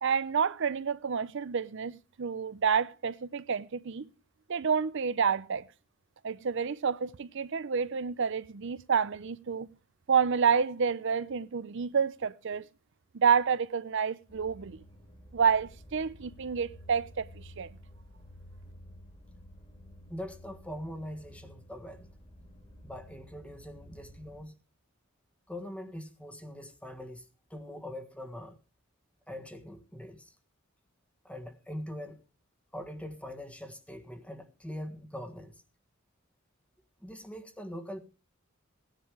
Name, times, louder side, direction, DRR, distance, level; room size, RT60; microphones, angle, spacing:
voice 1, 0.0-4.1 4.5-5.6 6.2-9.7 10.1-12.6 13.1-14.8 15.3-17.7, right 6 dB, 60° right, 0.6 m, -29 dB
sound 1, 14.3-24.4, equal, 30° left, 3.3 m, -52 dB
voice 2, 20.1-22.1 22.8-24.5 25.5-28.6 29.3-30.3 31.2-32.2 32.7-35.6 37.0-38.0, equal, 5° left, 1.5 m, -42 dB
16.5 x 10.5 x 4.8 m
head